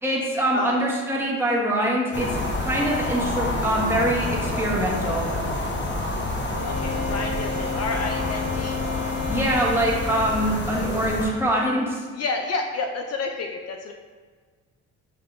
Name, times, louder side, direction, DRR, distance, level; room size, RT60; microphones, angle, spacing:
voice 1, 0.0-5.3 9.3-12.0, right 1 dB, 10° right, -5 dB, 1.1 m, -24 dB
voice 2, 0.5-0.8 6.6-8.8 12.1-13.9, left 3 dB, 55° left, 3 dB, 0.5 m, -29 dB
sound 1, 2.1-11.3, left 2 dB, 40° left, 0.8 m, -28 dB
Wind instrument woodwind instrument, 6.5-10.6, left 5 dB, 60° right, 1.1 m, -32 dB
7.4 x 2.5 x 2.6 m, 1.5 s
cardioid pair, 90°, 30 cm